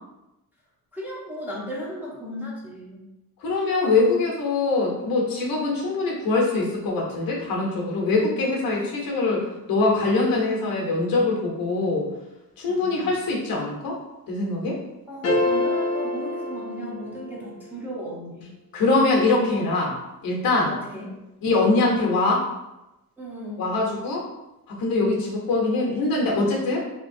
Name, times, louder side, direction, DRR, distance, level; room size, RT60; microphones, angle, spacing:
voice 1, 0.9-3.0 12.7-13.1 15.1-18.5 20.9-21.1 23.2-23.6, equal, 5° right, -7 dB, 0.8 m, -36 dB
voice 2, 3.4-12.1 12.6-14.0 14.3-14.8 18.7-19.9 20.2-20.7 21.4-22.5 23.6-24.3 24.7-26.8, left 3 dB, 70° left, -2 dB, 1.0 m, -23 dB
sound 1, 15.2-17.5, left 2 dB, 45° left, 0.7 m, -26 dB
3.1 x 2.9 x 2.6 m, 0.95 s
cardioid pair, 140°, 36 cm